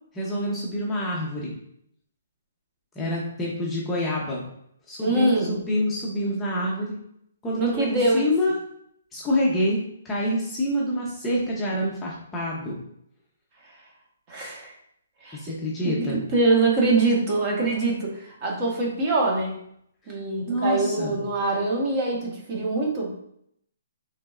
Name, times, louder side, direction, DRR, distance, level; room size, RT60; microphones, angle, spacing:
voice 1, 0.1-1.5 3.0-4.4 4.9-7.0 7.4-8.6 9.1-9.8 10.0-12.8 15.3-16.2 20.5-21.2, left 1 dB, 10° left, -5 dB, 0.8 m, -27 dB
voice 2, 5.0-5.6 7.5-8.2 13.6-13.8 14.3-14.7 15.2-15.4 15.8-19.6 20.1-23.1, right 2 dB, 30° right, -1 dB, 1.4 m, -24 dB
5.6 x 3.3 x 2.5 m, 0.71 s
hypercardioid pair, 160°, 0 cm